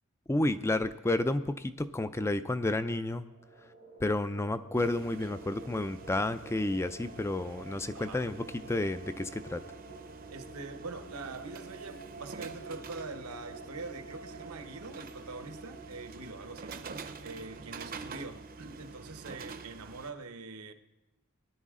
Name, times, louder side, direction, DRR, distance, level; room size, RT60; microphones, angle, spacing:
voice 1, 0.3-3.2 4.0-8.4 8.7-9.6, left 2 dB, 10° left, 0.4 m, -31 dB
sound 1, 3.2-20.1, right 3 dB, 65° left, 3.8 m, -51 dB
sound 2, 4.8-20.1, right 4 dB, 40° right, 0.7 m, -47 dB
voice 2, 10.3-16.7 17.2-20.7, right 3 dB, 80° right, 1.0 m, -44 dB
20.0 x 10.5 x 3.7 m
head